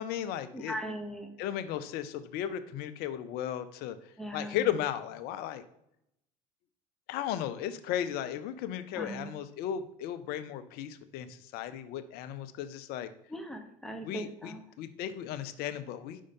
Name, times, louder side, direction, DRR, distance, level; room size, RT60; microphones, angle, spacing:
voice 1, 0.0-0.8 1.4-4.0 4.3-5.6 7.1-13.1 14.0-16.2, left 10 dB, 60° left, 12 dB, 0.7 m, -35 dB
voice 2, 0.5-1.3 4.2-4.6 9.0-9.3 13.3-14.6, right 1 dB, ahead, 4 dB, 1.2 m, -39 dB
5.4 x 5.0 x 5.5 m, 0.77 s
hypercardioid pair, 70°, 18 cm